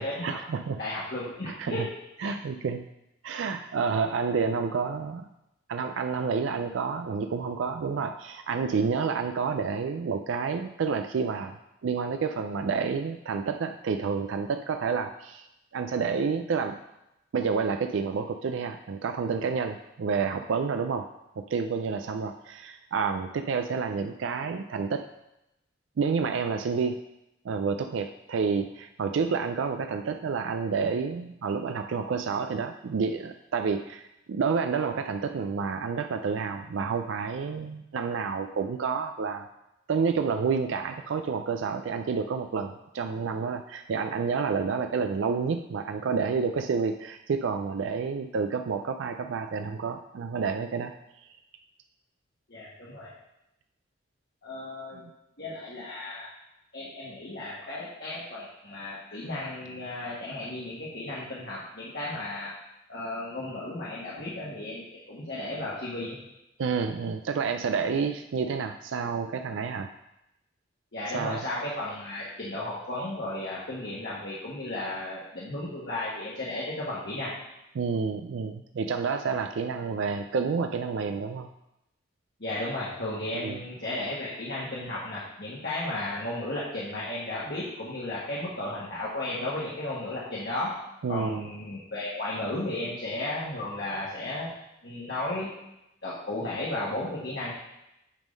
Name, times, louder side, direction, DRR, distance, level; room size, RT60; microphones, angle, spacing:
voice 1, 0.0-0.8 1.4-1.9 2.2-2.9 3.2-5.3 5.7-11.6 11.8-15.5 15.7-16.8 17.3-21.1 21.4-25.1 26.0-27.0 27.4-39.4 39.9-50.9 66.6-69.9 71.1-71.4 77.7-81.5 83.3-83.6 91.0-91.5, right 5 dB, 75° right, 6 dB, 0.4 m, -29 dB
voice 2, 0.8-1.8 2.2-2.3 52.5-53.1 54.4-55.0 55.4-56.3 56.7-62.5 62.9-66.2 70.9-77.3 82.4-90.7 91.1-94.5 94.8-95.5 96.0-97.5, left 1 dB, 55° left, -7 dB, 1.5 m, -34 dB
9.0 x 3.7 x 5.3 m, 0.88 s
head